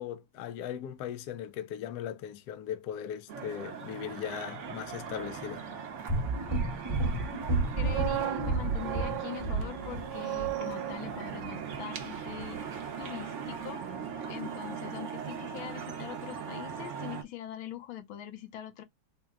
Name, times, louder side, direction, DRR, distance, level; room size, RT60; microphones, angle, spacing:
voice 1, 0.0-5.6, left 10 dB, 70° left, 1.0 m, -38 dB
sound 1, 3.3-17.2, right 7 dB, 55° right, 0.8 m, -40 dB
sound 2, 6.1-10.1 10.4-10.5, right 2 dB, 35° right, 0.4 m, -31 dB
sound 3, 7.6-13.5 13.8-14.1, right 14 dB, 75° right, 1.3 m, -38 dB
voice 2, 7.8-12.6 13.0-13.8 14.3-18.8, left 12 dB, 85° left, 1.6 m, -42 dB
4.3 x 2.1 x 3.6 m
omnidirectional pair, 2.1 m